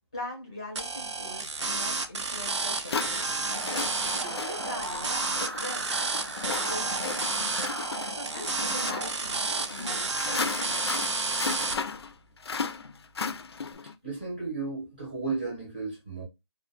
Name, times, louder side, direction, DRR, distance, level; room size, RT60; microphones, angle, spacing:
voice 1, 0.1-3.4 4.0-5.2 5.5-6.1 6.5-7.4 8.1-10.8, left 1 dB, 15° left, 0.6 m, -42 dB
sound 1, 0.8-11.8, right 3 dB, 85° right, 0.5 m, -31 dB
sound 2, 2.0-2.1 2.9-13.9, left 5 dB, 65° left, 0.4 m, -35 dB
sound 3, 3.5-9.1, right 2 dB, 40° right, 0.3 m, -38 dB
voice 2, 14.0-16.2, right 4 dB, 20° right, 0.7 m, -34 dB
2.1 x 2.1 x 3.1 m
hypercardioid pair, 180°, 15 cm